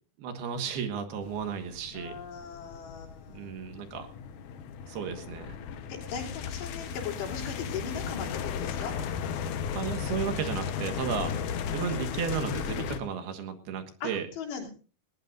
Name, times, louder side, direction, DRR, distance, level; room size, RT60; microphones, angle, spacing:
voice 1, 0.2-2.1 3.3-4.1 4.9-5.6 9.7-11.3 11.7-14.3, right 7 dB, 70° right, 7 dB, 3.4 m, -34 dB
sound 1, 1.2-13.0, left 7 dB, 70° left, 2.0 m, -35 dB
voice 2, 1.9-3.4 5.9-8.9 11.2-11.4 14.0-14.7, left 6 dB, 85° left, -1 dB, 5.4 m, -38 dB
20.0 x 18.5 x 2.6 m, 0.38 s
omnidirectional pair, 4.8 m